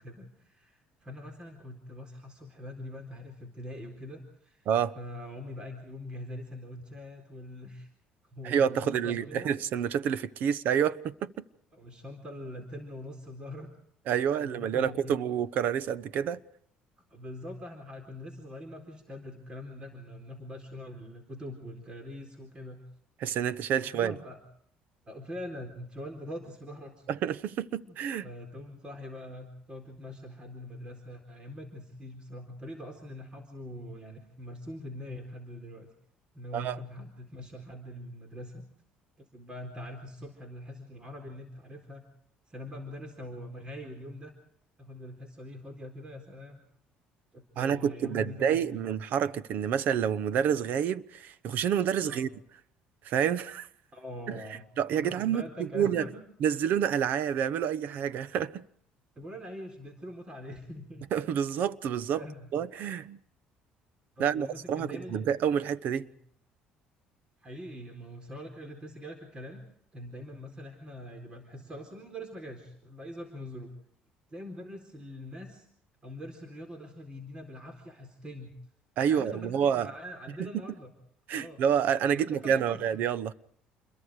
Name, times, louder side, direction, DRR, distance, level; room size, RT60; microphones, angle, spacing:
voice 1, 0.0-4.7 5.0-7.9 8.3-9.5 11.7-13.7 14.4-15.2 17.1-22.8 23.8-24.4 25.1-27.1 27.7-27.9 28.2-35.9 36.3-38.6 39.2-42.0 42.5-44.3 44.8-46.6 47.3-48.8 52.1-52.3 53.9-54.6 54.9-56.2 59.2-61.0 62.2-62.5 64.2-65.6 66.0-66.1 67.4-69.6 69.9-73.7 74.3-75.7 76.0-78.5 79.1-80.9 81.3-81.6 82.1-82.8, left 1 dB, 25° right, 4.2 m, -43 dB
voice 2, 8.4-11.4 14.1-16.4 23.2-24.2 27.1-28.3 36.5-36.8 47.6-52.3 53.0-53.7 54.8-56.1 56.4-58.6 61.1-62.2 62.5-63.2 64.2-66.1 79.0-79.9 80.4-80.5 81.3-83.3, right 8 dB, 65° right, 1.0 m, -28 dB
28.5 x 22.5 x 4.9 m
cardioid pair, 115°, 3 cm